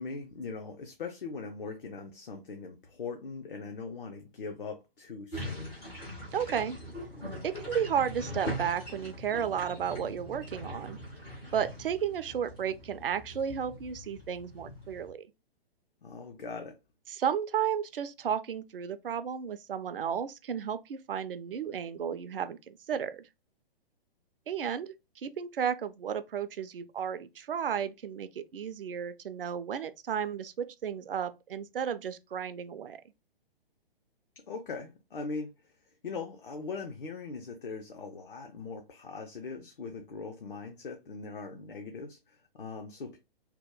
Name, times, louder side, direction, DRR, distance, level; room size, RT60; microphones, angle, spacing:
voice 1, 0.0-5.7 16.0-16.8 34.4-35.5 36.0-43.2, left 4 dB, 60° left, 0.6 m, -40 dB
sound 1, 5.3-15.1, equal, 5° left, 0.3 m, -41 dB
voice 2, 6.3-6.8 7.4-11.0 11.5-15.2 17.1-23.2 24.5-33.0, right 8 dB, 65° right, 0.4 m, -33 dB
2.9 x 2.1 x 3.6 m
figure-of-eight pair, 120°, 30 cm